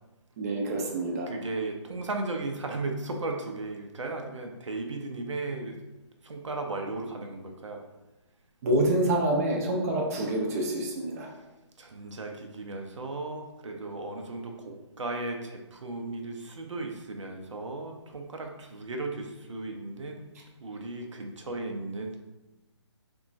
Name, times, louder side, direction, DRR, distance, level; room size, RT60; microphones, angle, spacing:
voice 1, 0.4-1.3 8.6-11.3, right 1 dB, 30° right, 0 dB, 0.4 m, -27 dB
voice 2, 1.3-5.8 6.2-7.8 11.8-20.3 20.6-22.2, right 2 dB, 85° right, 2 dB, 0.5 m, -36 dB
2.9 x 2.2 x 2.5 m, 1.1 s
figure-of-eight pair, 145°, 15 cm